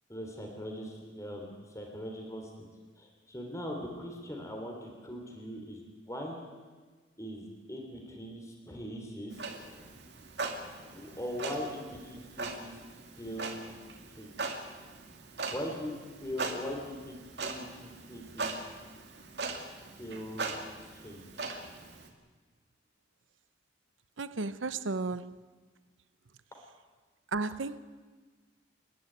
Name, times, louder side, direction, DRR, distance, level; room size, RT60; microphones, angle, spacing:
voice 1, 0.1-2.5 3.0-5.8 6.1-6.5 7.2-9.4 10.9-12.8 13.1-13.6 14.2-14.5 15.5-15.9 16.2-18.5 20.0-20.5 20.9-21.2, equal, 15° left, 3.3 m, -40 dB
Clock, 9.3-22.1, right 3 dB, 60° right, 2.5 m, -40 dB
voice 2, 24.2-25.4 27.3-27.8, right 3 dB, 80° right, 0.8 m, -34 dB
29.5 x 11.0 x 9.3 m
head